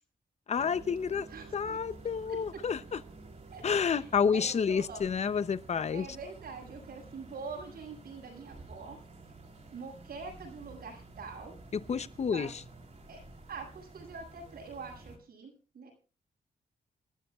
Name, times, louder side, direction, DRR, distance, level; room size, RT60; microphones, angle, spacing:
voice 1, 0.5-1.3 1.5-3.0 3.6-6.0 11.7-12.5, left 6 dB, 45° left, 14 dB, 0.7 m, -29 dB
sound 1, 0.6-15.2, right 3 dB, 45° right, 3.3 m, -51 dB
voice 2, 1.1-1.8 2.3-2.4 3.5-5.0 5.9-9.0 9.7-11.6 12.3-12.5 13.1-13.2 13.5-15.9, right 4 dB, 80° right, 0 dB, 6.8 m, -45 dB
28.0 x 12.0 x 2.4 m, 0.35 s
wide cardioid pair, 125°, 16 cm